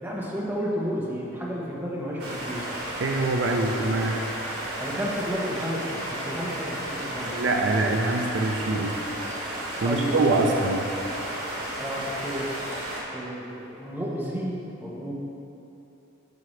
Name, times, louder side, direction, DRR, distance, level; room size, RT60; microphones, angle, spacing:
voice 1, 0.0-2.7 3.4-3.8 4.8-7.5 9.8-10.6 11.8-12.6 13.1-15.1, equal, 10° right, -5 dB, 1.0 m, -32 dB
sound 1, 2.2-13.0, right 1 dB, 85° right, 1.9 m, -33 dB
voice 2, 3.0-4.2 7.3-9.0 9.8-10.9, right 2 dB, 60° right, 2 dB, 0.5 m, -24 dB
12.0 x 5.8 x 3.2 m, 2.9 s
head